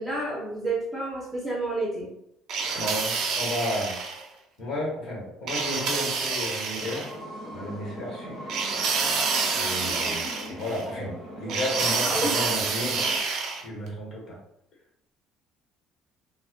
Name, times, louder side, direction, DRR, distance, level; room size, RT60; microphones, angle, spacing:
voice 1, 0.0-2.1 9.8-10.3 12.0-12.4, right 2 dB, ahead, -5 dB, 0.5 m, -30 dB
sound 1, 2.5-4.2 5.5-7.1 8.5-10.8 11.5-13.6, right 4 dB, 55° right, 0.4 m, -28 dB
voice 2, 2.7-4.0 4.6-7.1 7.5-8.4 9.5-13.0 13.6-14.4, left 1 dB, 50° left, -4 dB, 0.9 m, -33 dB
sound 2, 6.8-13.2, equal, 75° left, 1.2 m, -40 dB
2.4 x 2.1 x 2.4 m, 0.74 s
cardioid pair, 165°, 0 cm